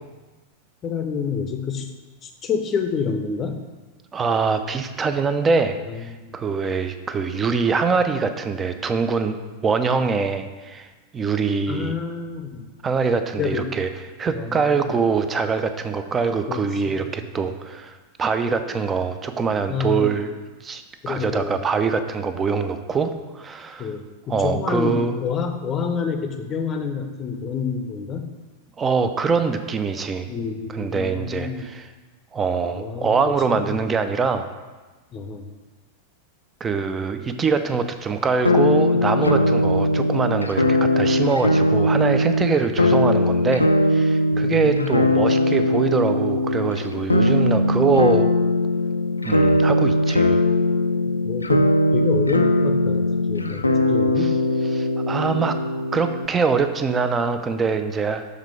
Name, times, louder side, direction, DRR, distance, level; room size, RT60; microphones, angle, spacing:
voice 1, 0.8-1.9 2.2-3.6 5.9-6.3 11.7-12.7 13.4-13.7 14.3-14.9 16.5-17.5 19.7-20.1 21.0-21.6 23.8-28.3 30.3-31.7 32.8-33.2 33.5-33.8 35.1-35.5 39.3-39.7 44.3-45.1 51.2-54.4, left 6 dB, 30° left, 6 dB, 0.6 m, -28 dB
voice 2, 4.1-9.4 9.6-10.9 11.1-12.0 12.8-13.9 14.2-17.9 18.2-20.3 20.6-23.9 24.3-25.2 28.8-30.3 30.7-31.9 32.3-34.5 36.6-48.3 49.2-50.4 54.7-55.5 55.9-58.2, right 5 dB, 20° right, 9 dB, 0.4 m, -23 dB
sound 1, 38.4-56.3, left 1 dB, 80° left, 0.3 m, -20 dB
6.6 x 3.6 x 4.8 m, 1.2 s
figure-of-eight pair, 90°, 0 cm